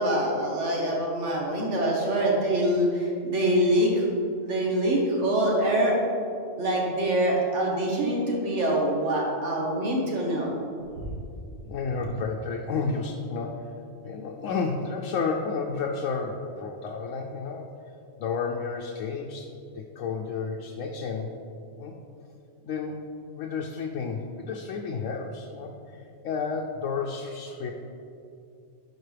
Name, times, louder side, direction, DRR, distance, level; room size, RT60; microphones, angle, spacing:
voice 1, 0.0-4.0 4.4-6.0 6.6-10.5, right 1 dB, 70° right, -2 dB, 1.6 m, -25 dB
voice 2, 11.7-13.7 14.0-17.7 18.2-21.4 21.8-21.9 22.6-23.0 23.3-27.7, left 5 dB, 85° left, 0 dB, 1.0 m, -31 dB
11.0 x 4.7 x 3.3 m, 2.6 s
omnidirectional pair, 1.3 m